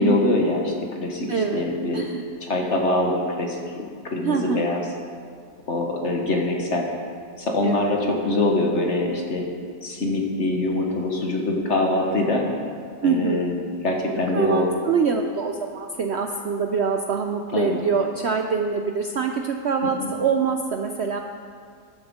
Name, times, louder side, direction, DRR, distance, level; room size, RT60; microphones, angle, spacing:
voice 1, 0.0-2.0 2.4-3.6 4.0-4.8 5.7-6.9 7.4-9.5 9.8-12.4 13.0-14.7 17.5-17.8 19.8-20.1, left 2 dB, 45° left, 1 dB, 1.5 m, -24 dB
voice 2, 1.3-2.2 4.2-4.6 7.6-8.0 13.0-13.5 14.3-21.2, right 5 dB, 70° right, 4 dB, 0.6 m, -24 dB
13.0 x 11.5 x 3.7 m, 2.2 s
omnidirectional pair, 1.8 m